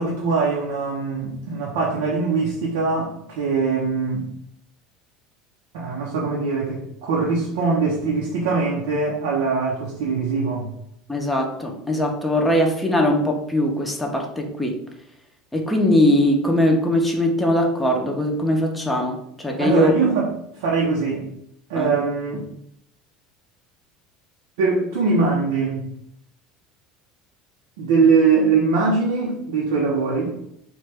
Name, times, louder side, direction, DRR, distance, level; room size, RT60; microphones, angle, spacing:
voice 1, 0.0-4.3 5.7-10.7 19.6-20.3 20.6-21.3 21.7-22.5 24.6-25.8 27.8-30.4, right 4 dB, 90° right, -2 dB, 0.5 m, -22 dB
voice 2, 11.1-14.8 15.5-19.9 21.7-21.9, left 1 dB, 5° left, 1 dB, 0.5 m, -21 dB
2.9 x 2.2 x 3.3 m, 0.74 s
supercardioid pair, 120°, 0 cm